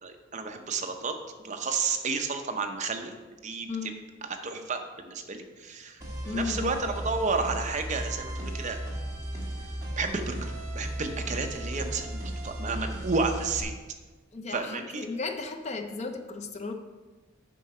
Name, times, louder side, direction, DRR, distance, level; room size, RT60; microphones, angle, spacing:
voice 1, 0.0-3.2 3.4-3.7 4.2-4.8 5.1-6.0 6.3-8.8 10.0-13.7 14.5-15.1, right 4 dB, 35° right, 5 dB, 0.6 m, -31 dB
voice 2, 3.7-4.0 6.2-6.8 14.3-16.7, left 4 dB, 30° left, 6 dB, 0.5 m, -35 dB
sound 1, 6.0-13.6, right 1 dB, 15° right, 1.6 m, -35 dB
8.4 x 5.7 x 4.3 m, 1.3 s
head